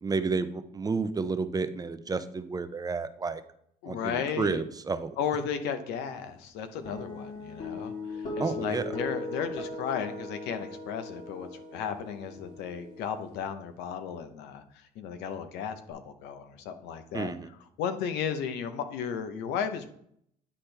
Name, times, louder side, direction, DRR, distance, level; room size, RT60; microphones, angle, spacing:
voice 1, 0.0-3.4 3.9-5.2 8.4-8.9 17.1-17.5, right 4 dB, 20° right, 11 dB, 0.5 m, -31 dB
voice 2, 3.8-4.6 5.2-17.3 17.8-19.9, left 7 dB, 90° left, 9 dB, 0.8 m, -34 dB
sound 1, 6.9-13.4, left 2 dB, 60° left, 2.7 m, -39 dB
9.8 x 4.3 x 3.3 m, 0.69 s
cardioid pair, 110°, 17 cm